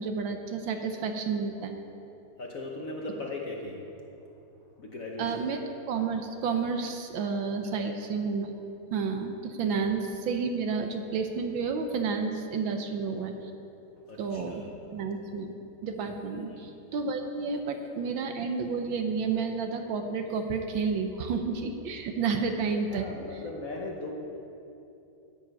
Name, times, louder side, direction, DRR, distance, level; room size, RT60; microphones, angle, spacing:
voice 1, 0.0-1.8 5.2-5.6 5.9-8.5 8.9-13.4 14.2-14.7 14.9-15.5 15.8-23.4, right 5 dB, 70° right, 5 dB, 1.5 m, -31 dB
voice 2, 2.4-3.8 4.8-5.3 7.7-7.9 14.1-14.7 16.5-16.7 22.9-24.1, left 2 dB, 50° left, 0 dB, 1.2 m, -38 dB
10.5 x 7.5 x 8.8 m, 2.9 s
omnidirectional pair, 2.4 m